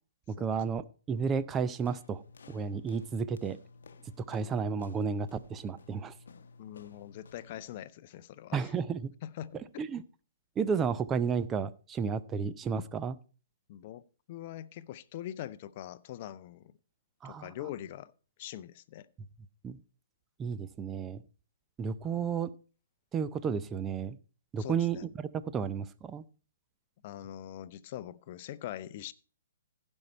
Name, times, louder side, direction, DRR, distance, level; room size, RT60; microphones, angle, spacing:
voice 1, 0.3-2.2 2.5-3.6 4.3-6.1 8.5-9.1 9.8-10.0 10.6-13.2 17.2-17.5 19.6-19.8 20.4-21.2 21.8-22.5 23.1-24.2 24.5-26.2, right 6 dB, 20° right, 0.5 m, -32 dB
sound 1, 1.8-7.6, left 4 dB, 70° left, 0.8 m, -54 dB
voice 2, 6.6-8.7 9.2-9.6 13.7-14.0 14.3-16.7 17.2-18.1 18.4-19.1 24.6-25.0 27.0-29.1, left 12 dB, 45° left, 0.6 m, -43 dB
15.5 x 5.5 x 4.3 m
hypercardioid pair, 130°, 0 cm